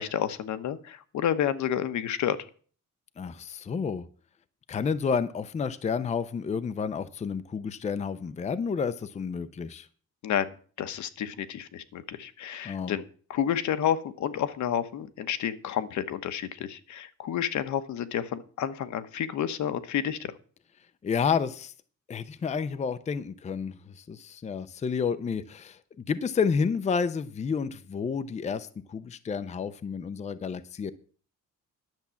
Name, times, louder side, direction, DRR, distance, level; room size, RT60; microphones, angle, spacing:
voice 1, 0.0-2.4 10.2-10.5 10.8-13.0 13.3-20.3, left 9 dB, 70° left, 1.0 m, -30 dB
voice 2, 3.2-4.1 4.7-9.9 12.6-12.9 21.0-21.7 22.1-30.9, left 6 dB, 25° left, 0.5 m, -30 dB
10.5 x 7.3 x 7.0 m
cardioid pair, 165°, 30 cm